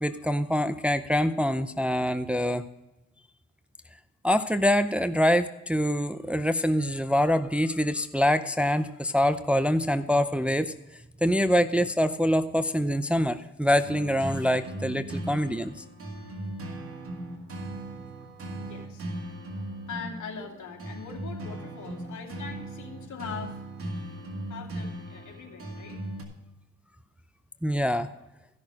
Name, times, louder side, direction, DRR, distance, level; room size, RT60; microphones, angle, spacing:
voice 1, 0.0-2.7 4.2-10.7 11.2-15.7 27.6-28.1, equal, 5° right, 10 dB, 0.5 m, -25 dB
sound 1, 13.8-26.2, right 1 dB, 45° right, 2.5 m, -38 dB
voice 2, 18.5-19.1 19.5-23.6 24.5-26.0, left 6 dB, 75° left, 1 dB, 2.6 m, -42 dB
15.0 x 6.4 x 4.8 m, 0.95 s
cardioid pair, 90°, 30 cm